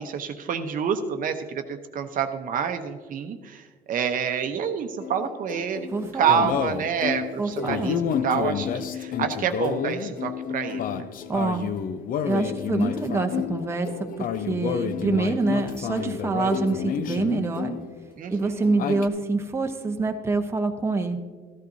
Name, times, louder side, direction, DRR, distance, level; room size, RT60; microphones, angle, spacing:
voice 1, 0.0-5.9 6.1-11.1 18.2-18.7, right 7 dB, 55° right, 7 dB, 0.8 m, -28 dB
sound 1, 5.0-18.1 18.4-19.1, left 8 dB, 55° left, 0.6 m, -30 dB
voice 2, 5.9-6.5 7.4-8.0 11.3-11.7 12.2-13.9 14.2-17.8 18.3-21.2, right 3 dB, 15° right, 4 dB, 0.8 m, -26 dB
14.5 x 11.5 x 2.7 m, 1.5 s
cardioid pair, 110°, 17 cm